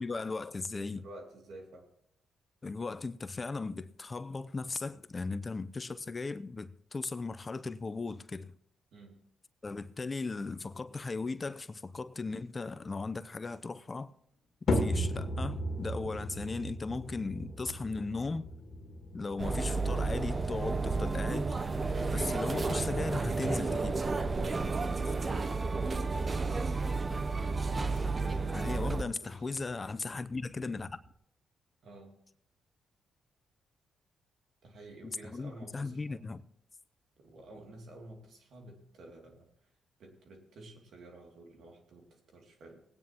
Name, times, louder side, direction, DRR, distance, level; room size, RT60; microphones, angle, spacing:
voice 1, 0.0-1.0 2.6-8.5 9.6-14.1 14.7-18.5 19.1-21.5 22.1-24.0 25.1-25.2 28.5-31.0 35.0-36.4, left 3 dB, 30° left, 0.6 m, -37 dB
voice 2, 0.9-1.9 8.9-9.2 26.0-26.9 27.6-29.6 31.8-32.2 34.6-36.3 37.2-39.5 40.0-42.8, right 2 dB, 70° right, 2.6 m, -51 dB
sound 1, 14.7-31.1, left 1 dB, 60° left, 2.1 m, -39 dB
sound 2, 19.4-29.0, right 3 dB, 35° right, 0.7 m, -32 dB
20.0 x 9.3 x 3.0 m
cardioid pair, 65°, 0 cm